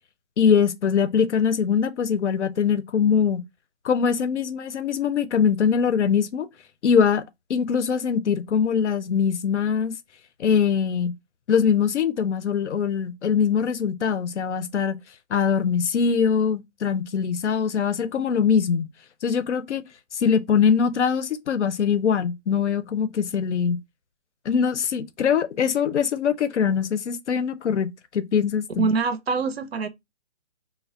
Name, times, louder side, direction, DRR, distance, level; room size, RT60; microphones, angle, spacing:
voice 1, 0.4-3.4 3.8-6.5 6.8-7.2 7.5-9.9 10.4-11.1 11.5-15.0 15.3-18.9 19.2-19.8 20.1-23.8 24.5-28.9, left 7 dB, 70° left, 0.6 m, -22 dB
voice 2, 28.8-29.9, right 4 dB, 60° right, 0.5 m, -24 dB
2.2 x 2.1 x 3.6 m
hypercardioid pair, 180°, 36 cm